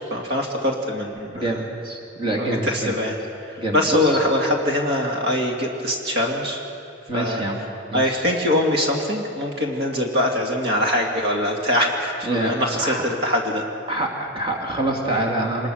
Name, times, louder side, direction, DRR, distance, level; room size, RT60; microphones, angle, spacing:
voice 1, 0.1-1.4 2.4-3.2 3.5-6.6 7.1-7.4 7.9-13.6, left 1 dB, 55° right, 1 dB, 2.5 m, -23 dB
voice 2, 1.3-2.9 3.6-4.2 7.1-7.6 7.9-8.2 12.2-13.0 13.9-15.7, right 1 dB, 25° right, 0 dB, 2.6 m, -26 dB
26.0 x 21.0 x 6.5 m, 2.5 s
head